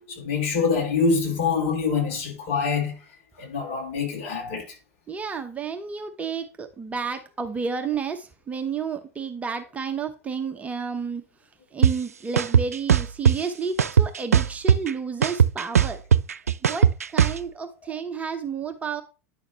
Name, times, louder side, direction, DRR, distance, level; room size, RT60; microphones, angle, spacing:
voice 1, 0.1-3.0 3.4-4.7, left 5 dB, 55° left, 3.9 m, -25 dB
voice 2, 5.1-11.2 11.7-16.0 16.6-19.0, right 5 dB, 15° right, 0.9 m, -31 dB
sound 1, 11.8-11.9 12.4-13.3 13.8-14.9 15.2-17.4, right 8 dB, 75° right, 0.4 m, -18 dB
10.0 x 6.3 x 3.1 m
figure-of-eight pair, 85°, 8 cm